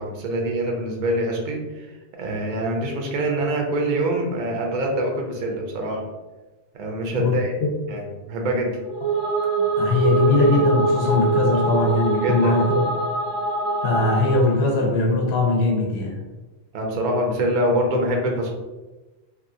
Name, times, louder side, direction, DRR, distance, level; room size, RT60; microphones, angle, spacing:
voice 1, 0.0-6.0 6.7-7.5 7.9-8.7 12.2-12.6 16.7-18.5, right 1 dB, 55° right, 1 dB, 0.5 m, -25 dB
sound 1, 8.8-14.6, right 3 dB, 85° right, 0.9 m, -23 dB
voice 2, 9.8-12.8 13.8-16.2, left 3 dB, 65° left, 0 dB, 0.9 m, -20 dB
2.8 x 2.3 x 2.5 m, 1.2 s
omnidirectional pair, 1.2 m